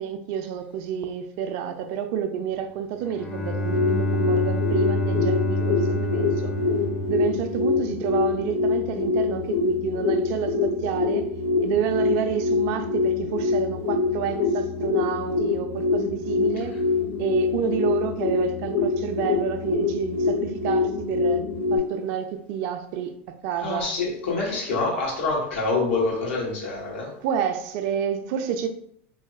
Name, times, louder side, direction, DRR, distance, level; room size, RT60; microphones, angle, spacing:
voice 1, 0.0-6.5 7.1-11.3 11.6-16.7 17.2-21.4 21.7-23.2 23.4-23.9 27.2-28.7, right 8 dB, 55° right, 0.4 m, -29 dB
Bowed string instrument, 3.0-8.0, equal, 20° left, 0.5 m, -27 dB
sound 1, 3.4-21.8, left 4 dB, 45° left, 0.9 m, -25 dB
voice 2, 23.6-27.1, left 3 dB, 75° left, 1.1 m, -26 dB
2.9 x 2.7 x 2.4 m
hypercardioid pair, 110°, 7 cm